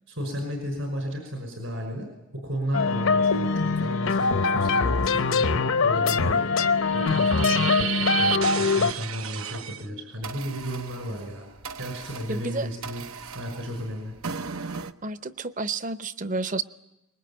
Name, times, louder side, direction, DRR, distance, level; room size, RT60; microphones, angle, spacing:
voice 1, 0.1-2.1 2.3-5.6 5.8-6.4 6.9-7.7 8.1-11.5 11.8-13.0 13.3-14.1, equal, 70° right, 4 dB, 5.7 m, -33 dB
sound 1, 2.7-8.9, left 4 dB, 75° left, 0.8 m, -23 dB
sound 2, 6.6-9.8 10.2-14.9, right 7 dB, 90° right, 0.9 m, -34 dB
voice 2, 12.3-12.7 15.0-16.6, right 3 dB, 40° right, 13 dB, 0.8 m, -30 dB
24.5 x 21.0 x 8.8 m, 0.98 s
head